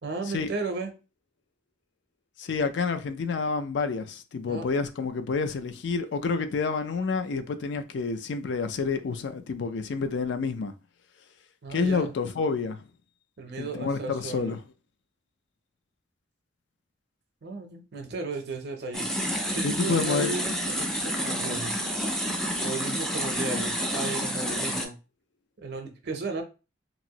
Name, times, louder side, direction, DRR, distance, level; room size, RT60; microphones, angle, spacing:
voice 1, 0.0-0.9 4.5-4.7 11.6-12.1 13.4-14.6 17.4-19.1 19.5-21.8 22.6-25.0 25.6-26.4, right 3 dB, 60° right, 0.6 m, -35 dB
voice 2, 2.4-10.7 11.7-12.8 13.6-14.6 19.6-20.5, left 4 dB, 65° left, 0.4 m, -29 dB
sound 1, 18.9-24.9, equal, 5° left, 0.4 m, -29 dB
3.0 x 2.5 x 2.8 m
head